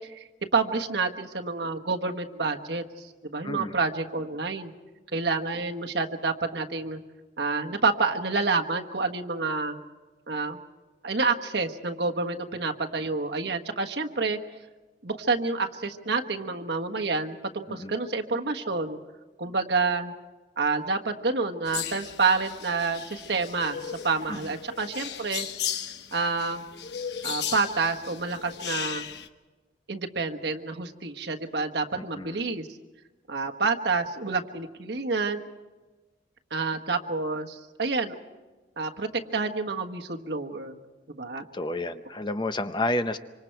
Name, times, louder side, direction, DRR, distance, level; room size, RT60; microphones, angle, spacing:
voice 1, 0.1-4.7 5.1-7.0 7.4-9.8 10.3-10.6 11.0-14.4 15.0-19.0 19.4-20.1 20.6-25.5 26.1-26.6 27.2-29.1 29.9-32.8 33.3-35.4 36.5-38.2 38.8-40.8 41.1-41.4, right 4 dB, 65° right, 4 dB, 1.4 m, -28 dB
voice 2, 3.4-3.8 17.7-17.9 24.3-24.5 32.0-32.4 41.5-43.2, left 2 dB, 25° left, 10 dB, 0.7 m, -30 dB
sound 1, 21.7-29.3, left 9 dB, 65° left, 1.0 m, -36 dB
26.0 x 25.5 x 4.6 m, 1.2 s
head